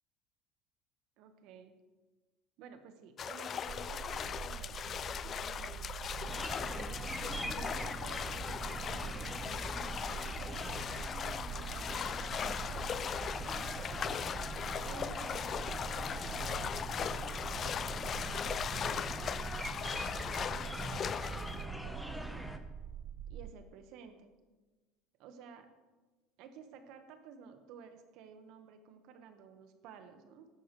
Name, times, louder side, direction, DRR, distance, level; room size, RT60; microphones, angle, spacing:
voice 1, 1.2-1.7 2.6-6.9 7.4-12.2 13.2-14.0 14.8-15.8 16.9-18.9 20.5-22.5 23.3-24.3 25.2-25.7 26.4-30.5, right 6 dB, 70° right, 7 dB, 1.4 m, -54 dB
sound 1, 3.2-21.6, left 8 dB, 40° left, 0.3 m, -39 dB
sound 2, 3.7-23.5, right 8 dB, 40° right, 0.5 m, -45 dB
sound 3, 6.2-22.6, equal, ahead, 1.0 m, -43 dB
13.5 x 11.0 x 3.2 m, 1.2 s
supercardioid pair, 95°, 0 cm